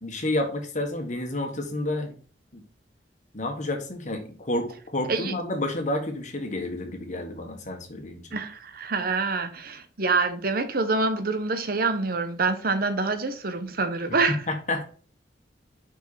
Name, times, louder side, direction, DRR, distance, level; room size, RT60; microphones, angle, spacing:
voice 1, 0.0-2.1 2.5-2.6 3.3-8.3 14.3-14.8, left 1 dB, 45° left, 1.5 m, -30 dB
voice 2, 8.3-14.4, right 3 dB, 55° right, 0.9 m, -26 dB
5.9 x 5.5 x 4.2 m
head